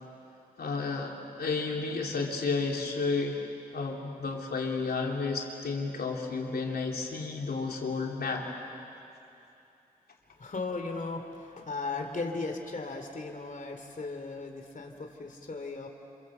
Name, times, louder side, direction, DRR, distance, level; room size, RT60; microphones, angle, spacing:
voice 1, 0.6-3.4 3.7-8.5, left 4 dB, 80° left, 0 dB, 3.3 m, -32 dB
voice 2, 10.4-15.9, left 3 dB, 55° left, 4 dB, 3.0 m, -37 dB
27.5 x 27.0 x 8.0 m, 2.7 s
cardioid pair, 45°, 16 cm